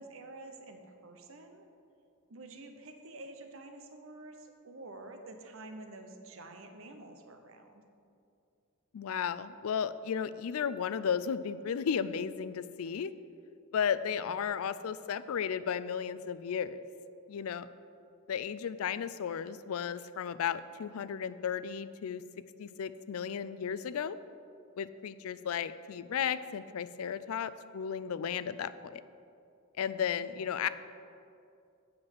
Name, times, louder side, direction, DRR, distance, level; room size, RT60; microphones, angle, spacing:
voice 1, 0.0-1.6 2.3-7.7 14.1-14.2 30.0-30.4, right 2 dB, 70° right, 5 dB, 0.9 m, -49 dB
voice 2, 8.9-13.1 13.7-16.8 17.3-17.7 18.3-22.2 22.6-24.2 24.8-29.0 29.8-30.7, left 7 dB, 80° left, 15 dB, 0.4 m, -34 dB
7.7 x 5.9 x 7.4 m, 2.5 s
head